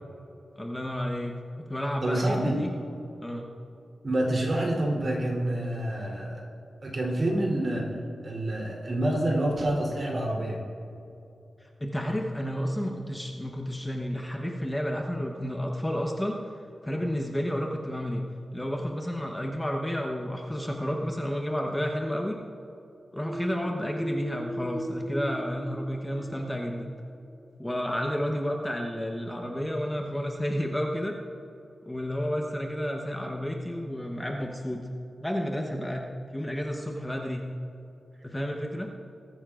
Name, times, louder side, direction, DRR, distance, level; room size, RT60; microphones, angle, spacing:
voice 1, 0.6-1.4 1.7-2.7 3.2-3.5 11.8-16.4 16.8-22.4 23.1-26.9 27.6-31.1 31.8-34.9 35.2-36.1 36.3-37.5 38.2-38.9, equal, 10° left, 1 dB, 1.0 m, -31 dB
voice 2, 2.0-2.6 4.0-6.4 6.8-7.9 8.2-10.6, right 1 dB, 45° right, -3 dB, 3.3 m, -27 dB
sound 1, 23.2-26.9, equal, 15° right, 2.0 m, -36 dB
21.0 x 14.0 x 2.5 m, 2.8 s
wide cardioid pair, 115°, 0 cm